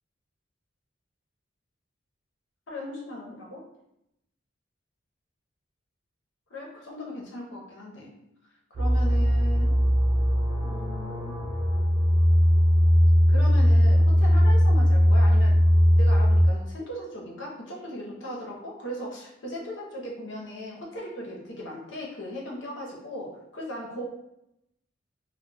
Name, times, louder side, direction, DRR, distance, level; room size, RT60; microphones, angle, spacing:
voice 1, 2.7-3.7 6.5-8.1 8.7-9.7 10.6-11.4 13.3-15.6 16.0-24.0, left 1 dB, 70° left, -3 dB, 0.7 m, -38 dB
sound 1, 8.7-16.4, equal, 35° right, 0.3 m, -20 dB
2.2 x 2.2 x 3.2 m, 0.83 s
head